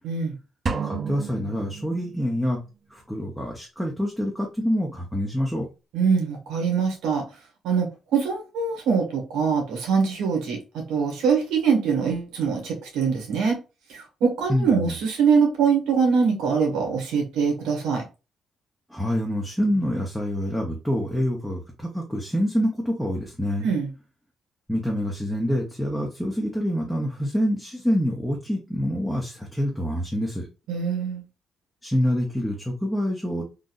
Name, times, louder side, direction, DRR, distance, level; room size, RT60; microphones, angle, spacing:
voice 1, 0.0-0.3 5.9-7.2 7.6-13.6 13.9-18.1 23.6-23.9 30.7-31.2, right 5 dB, 90° right, 1.5 m, -23 dB
sound 1, 0.7-2.5, right 5 dB, 40° right, 0.5 m, -31 dB
voice 2, 0.8-2.6 2.9-5.7 14.5-14.9 18.9-23.7 24.7-30.4 31.8-33.4, equal, ahead, 0.9 m, -26 dB
3.9 x 2.6 x 2.5 m
cardioid pair, 90°, 0 cm